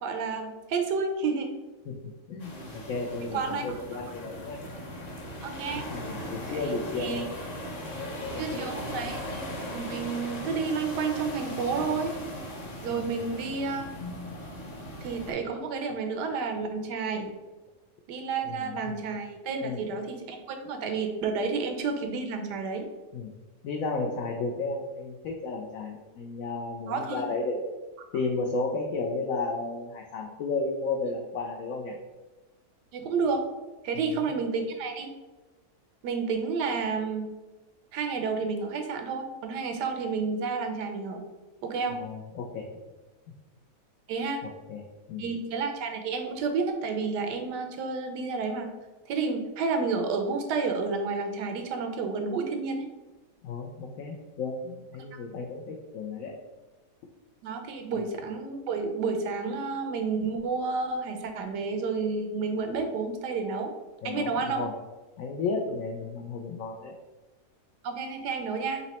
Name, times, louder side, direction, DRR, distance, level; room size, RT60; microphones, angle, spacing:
voice 1, 0.0-1.5 3.3-4.0 5.4-5.9 6.5-6.6 7.0-7.2 8.4-9.5 9.7-12.1 12.8-13.9 15.0-17.3 18.1-22.9 26.9-27.2 32.9-33.4 33.8-35.1 36.0-37.3 37.9-41.2 41.6-42.0 44.1-44.4 45.2-48.7 49.1-52.9 57.4-63.7 64.0-64.6 67.8-68.8, right 4 dB, 80° right, 5 dB, 1.3 m, -30 dB
voice 2, 1.9-4.6 5.7-7.2 7.8-8.7 12.9-13.3 18.4-19.0 19.6-19.9 23.1-23.3 23.6-27.6 28.1-32.0 34.2-34.3 42.0-42.7 44.4-44.8 45.1-45.3 53.4-56.3 58.0-58.1 64.0-64.7 65.2-67.0, left 3 dB, 70° left, 1 dB, 0.8 m, -33 dB
sound 1, 2.4-15.3, equal, 40° left, 0.6 m, -38 dB
4.1 x 2.9 x 4.1 m, 1.1 s
omnidirectional pair, 1.8 m